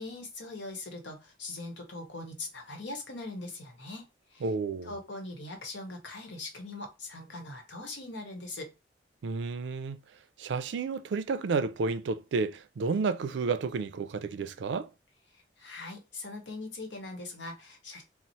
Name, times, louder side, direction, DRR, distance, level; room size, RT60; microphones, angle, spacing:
voice 1, 0.0-4.0 4.3-4.5 4.8-8.7 15.6-18.0, left 2 dB, 85° left, 1.0 m, -41 dB
voice 2, 4.4-4.9 9.2-10.0 10.4-14.9, right 4 dB, 80° right, 0.4 m, -31 dB
2.9 x 2.0 x 4.0 m
head